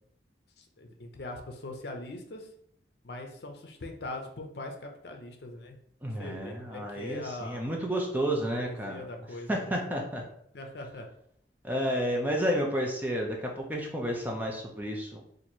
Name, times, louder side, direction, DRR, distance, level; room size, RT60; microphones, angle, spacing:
voice 1, 0.6-2.5 3.0-5.8 6.2-7.6 8.6-10.0 10.5-11.1, left 2 dB, 65° left, 3 dB, 0.6 m, -41 dB
voice 2, 6.0-9.1 9.5-10.2 11.6-15.2, equal, 10° right, 0 dB, 0.5 m, -31 dB
2.9 x 2.6 x 4.3 m, 0.71 s
head